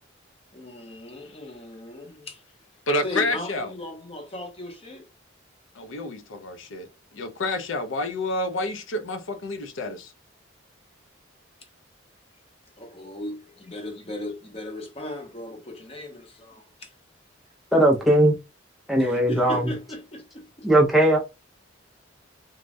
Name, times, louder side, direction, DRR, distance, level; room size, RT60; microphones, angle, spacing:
voice 1, 0.5-2.4 3.0-5.0 11.6-11.7 12.8-16.9 19.0-20.7, left 1 dB, 30° left, 0.7 m, -37 dB
voice 2, 2.9-3.7 5.7-10.1, left 2 dB, 75° left, 0.5 m, -29 dB
voice 3, 17.7-18.4 18.9-19.7 20.6-21.2, right 1 dB, ahead, 0.4 m, -19 dB
3.1 x 2.2 x 2.5 m
head